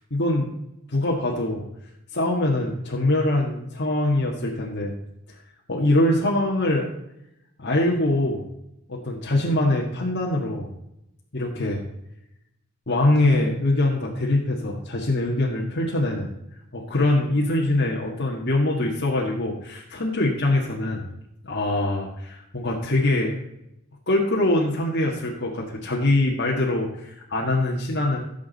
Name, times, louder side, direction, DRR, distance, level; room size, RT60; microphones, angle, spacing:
voice 1, 0.1-0.5 0.9-1.6 2.1-4.9 5.3-5.4 5.7-6.9 7.6-8.5 8.9-10.7 11.3-11.8 12.9-16.3 16.7-21.1 21.4-23.3 24.1-28.2, left 1 dB, 55° left, -4 dB, 1.8 m, -23 dB
16.0 x 7.4 x 4.1 m, 0.84 s
head